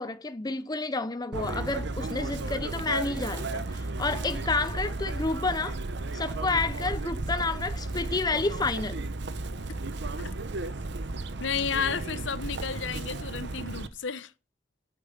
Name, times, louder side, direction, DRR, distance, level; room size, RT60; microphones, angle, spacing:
voice 1, 0.0-5.8 6.1-9.0, left 3 dB, 20° left, 0.6 m, -30 dB
Chirp tweet, 1.3-13.9, right 2 dB, 60° right, 0.9 m, -34 dB
voice 2, 11.4-14.3, left 6 dB, 70° left, 0.8 m, -32 dB
9.1 x 7.3 x 8.5 m
head